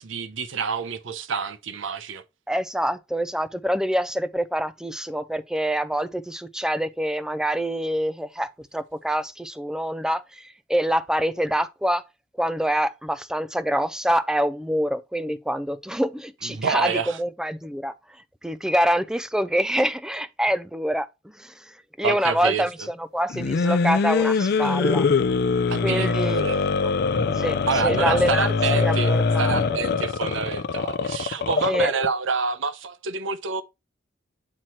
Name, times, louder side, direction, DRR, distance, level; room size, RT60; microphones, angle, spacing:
voice 1, 0.0-2.2 16.4-17.2 22.0-22.9 25.7-26.7 27.7-29.1 29.4-33.6, right 5 dB, 80° right, 0.6 m, -28 dB
voice 2, 2.5-12.0 12.4-16.9 17.2-17.9 18.4-21.5 22.0-25.0 25.8-26.6 27.4-28.5 28.7-29.6 31.7-31.9, equal, 5° right, 0.4 m, -26 dB
sound 1, 23.3-32.1, left 4 dB, 55° left, 0.4 m, -23 dB
7.7 x 3.0 x 4.2 m
head